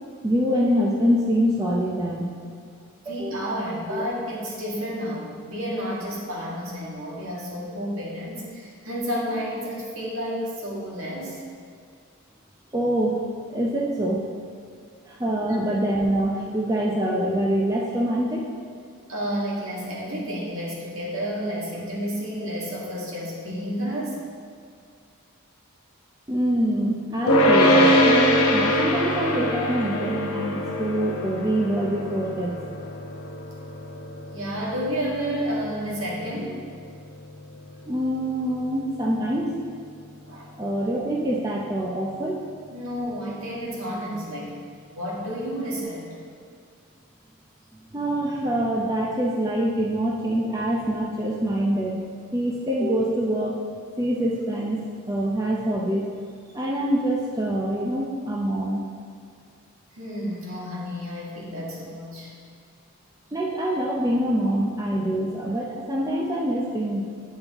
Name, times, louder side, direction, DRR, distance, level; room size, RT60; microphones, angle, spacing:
voice 1, 0.2-2.3 3.1-3.4 3.9-4.1 12.7-13.2 13.5-14.2 15.1-18.5 26.3-32.5 37.8-39.5 40.6-42.4 47.9-52.0 52.3-53.6 54.0-56.1 56.5-58.8 63.3-67.0, right 1 dB, 15° right, -3 dB, 0.5 m, -25 dB
voice 2, 3.1-11.4 19.1-24.2 34.3-36.6 40.3-40.5 42.7-44.5 44.9-46.2 59.9-62.3, equal, 70° right, -5 dB, 1.7 m, -31 dB
sound 1, 27.3-38.6, equal, 90° left, 0.9 m, -23 dB
8.5 x 5.4 x 3.5 m, 2.2 s
head